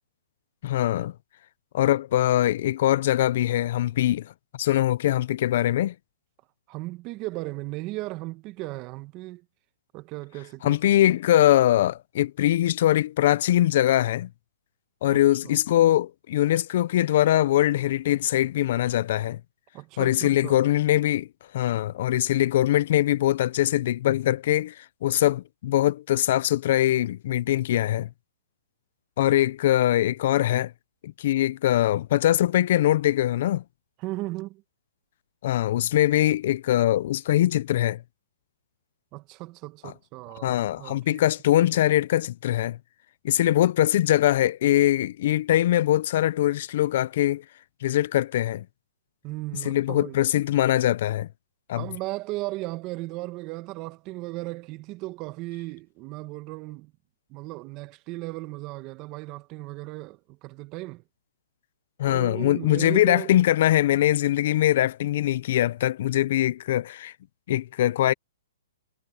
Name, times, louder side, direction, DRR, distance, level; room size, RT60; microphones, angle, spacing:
voice 1, 0.6-1.1 1.7-4.3 4.6-5.9 10.6-14.3 15.0-19.4 20.0-21.3 21.5-28.1 29.2-30.7 31.0-33.6 35.4-38.0 39.8-39.9 40.4-42.8 43.2-47.4 47.8-48.6 49.6-51.3 51.7-51.9 62.0-67.1 67.5-68.1, left 13 dB, 55° left, 0.5 m, -22 dB
voice 2, 6.7-9.4 9.9-11.0 15.1-15.6 19.7-20.6 34.0-34.6 39.1-41.2 49.2-50.2 51.7-56.9 57.3-61.0 62.0-63.3, right 20 dB, 30° right, 1.3 m, -36 dB
hypercardioid pair, 150°, 0 cm